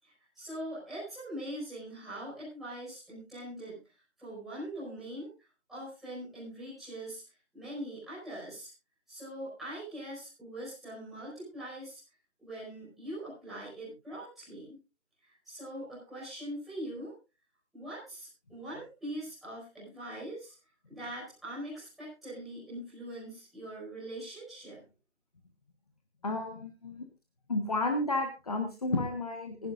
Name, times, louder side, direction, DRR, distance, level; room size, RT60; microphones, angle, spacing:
voice 1, 0.0-5.3 5.7-7.2 7.5-8.7 9.1-12.0 12.4-14.8 15.2-17.1 17.7-20.5 20.9-24.8, right 1 dB, ahead, -13 dB, 5.5 m, -42 dB
voice 2, 26.2-27.0 27.5-29.7, left 2 dB, 35° left, 4 dB, 1.4 m, -32 dB
25.5 x 11.0 x 2.6 m, 0.29 s
hypercardioid pair, 180°, 35 cm